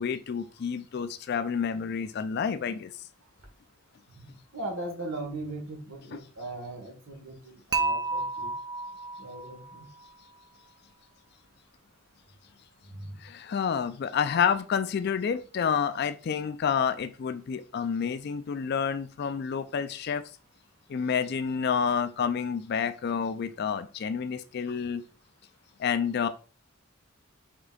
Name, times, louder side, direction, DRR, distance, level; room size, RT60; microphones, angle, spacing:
voice 1, 0.0-2.9 6.1-6.2 13.2-20.2 20.9-25.0 25.8-26.3, left 7 dB, 50° left, 11 dB, 0.3 m, -29 dB
voice 2, 4.5-8.5 9.2-9.9 12.9-13.2, right 2 dB, 70° right, 2 dB, 1.3 m, -38 dB
Dishes pots and pans / Chink clink, 7.7-9.8, right 3 dB, 20° right, 0.4 m, -31 dB
5.0 x 3.7 x 2.3 m, 0.36 s
head